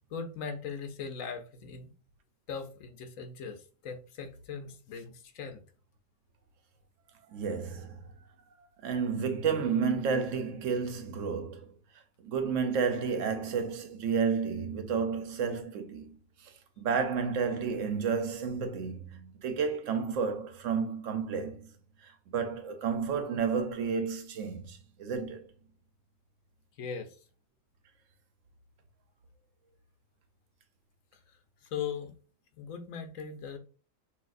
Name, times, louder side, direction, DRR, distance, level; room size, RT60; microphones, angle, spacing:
voice 1, 0.1-1.9 2.5-5.6 26.8-27.2 31.3-32.1 32.6-33.6, left 6 dB, 85° left, 1.1 m, -39 dB
voice 2, 7.3-8.0 8.8-11.8 12.2-16.2 16.4-21.7 22.0-25.5, right 6 dB, 75° right, 1.0 m, -31 dB
5.9 x 2.6 x 2.5 m
omnidirectional pair, 1.4 m